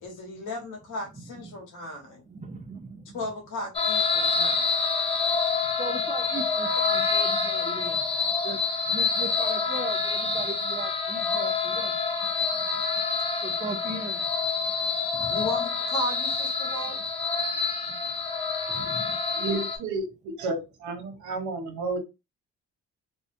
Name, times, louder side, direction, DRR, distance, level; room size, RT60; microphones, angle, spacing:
voice 1, 0.0-2.2 3.1-4.7 15.3-17.0, left 1 dB, 85° left, 1 dB, 1.1 m, -35 dB
voice 2, 1.2-1.5 2.3-3.0 5.8-8.0 8.4-8.6 8.9-11.9 13.4-14.2 15.1-15.5 18.7-19.2, right 4 dB, 25° right, 7 dB, 0.5 m, -38 dB
sound 1, 3.7-19.8, left 4 dB, 20° left, 0.6 m, -27 dB
voice 3, 19.3-22.0, right 3 dB, 75° right, 5 dB, 0.9 m, -31 dB
2.6 x 2.1 x 2.5 m, 0.26 s
cardioid pair, 90°, 30 cm